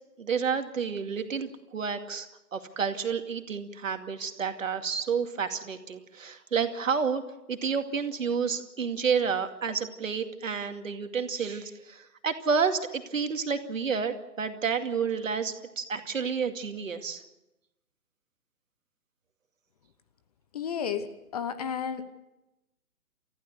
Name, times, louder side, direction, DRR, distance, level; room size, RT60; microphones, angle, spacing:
voice 1, 0.2-2.3 2.5-7.2 7.5-17.2, right 6 dB, 55° right, 7 dB, 2.4 m, -30 dB
voice 2, 20.5-21.1 21.3-22.0, left 7 dB, 25° left, 13 dB, 1.1 m, -31 dB
29.0 x 15.0 x 8.1 m, 0.95 s
figure-of-eight pair, 135°, 46 cm